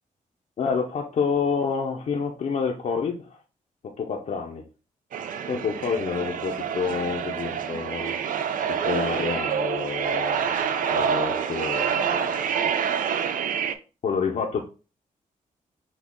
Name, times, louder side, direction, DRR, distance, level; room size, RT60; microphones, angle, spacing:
voice 1, 0.6-3.4 3.9-4.6 5.5-8.2 8.6-10.4 10.9-12.7 14.0-14.6, left 5 dB, 60° left, 0 dB, 0.6 m, -28 dB
sound 1, 5.1-13.7, right 7 dB, 70° right, 0.5 m, -27 dB
6.0 x 2.3 x 3.6 m, 0.34 s
cardioid pair, 115°, 14 cm